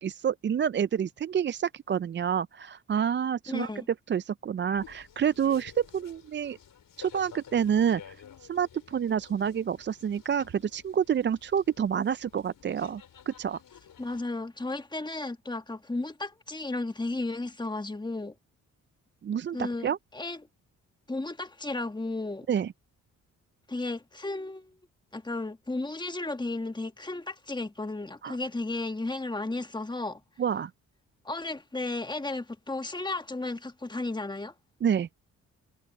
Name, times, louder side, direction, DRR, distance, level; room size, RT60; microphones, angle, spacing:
voice 1, 0.0-3.7 4.1-6.6 7.0-8.2 8.4-13.6 19.2-20.0 22.5-22.7 28.2-28.4 30.4-30.7 34.8-35.1, right 8 dB, 35° right, 0.4 m, -28 dB
voice 2, 3.5-3.9 14.0-18.3 19.5-20.4 21.1-22.5 23.7-24.8 25.1-30.2 31.2-34.5, left 2 dB, 15° left, 1.6 m, -34 dB
sound 1, 4.7-14.2, left 8 dB, 70° left, 4.9 m, -52 dB
supercardioid pair, 60°, 34 cm